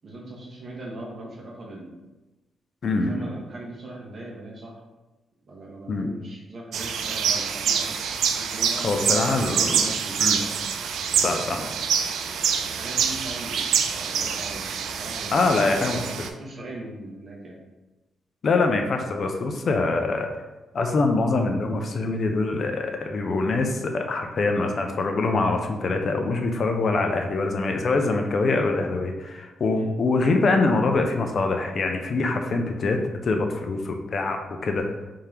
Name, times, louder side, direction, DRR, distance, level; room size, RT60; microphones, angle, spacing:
voice 1, 0.0-2.0 2.9-4.8 5.5-8.0 8.4-10.7 11.1-11.8 12.5-15.4 15.6-15.9 16.2-17.6 29.7-29.9, right 1 dB, 40° right, -2 dB, 0.9 m, -40 dB
voice 2, 2.8-3.3 5.9-6.1 8.8-9.9 10.2-10.4 11.2-11.7 15.3-16.3 18.4-20.3 20.7-34.4 34.6-34.9, left 3 dB, 45° left, 4 dB, 0.4 m, -24 dB
sound 1, 6.7-16.3, right 7 dB, 80° right, 0.3 m, -26 dB
3.6 x 2.8 x 3.3 m, 1.1 s
cardioid pair, 130°, 0 cm